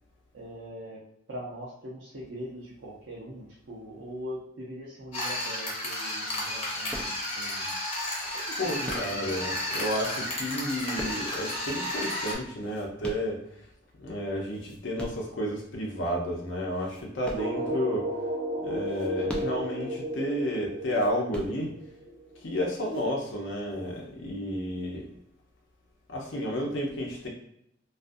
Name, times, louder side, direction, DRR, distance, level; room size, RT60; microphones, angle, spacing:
voice 1, 0.3-1.0 1.3-7.7 8.3-9.4 19.2-19.5, equal, 80° right, -5 dB, 0.6 m, -41 dB
sound 1, 5.1-12.4, left 1 dB, 30° left, 0.8 m, -32 dB
sound 2, 6.9-7.5 8.4-9.5 10.4-11.6 12.3-13.8 14.3-15.4 15.9-16.0 16.7-18.0 18.7-19.9 20.8-21.9 22.7-23.1, equal, 5° left, 0.4 m, -42 dB
voice 2, 8.6-13.6 14.0-18.1 18.6-21.7 22.4-25.1 26.1-27.3, equal, 75° left, -1 dB, 0.6 m, -31 dB
sound 3, 17.3-22.9, right 1 dB, 40° right, 0.7 m, -34 dB
2.4 x 2.4 x 2.6 m, 0.76 s
head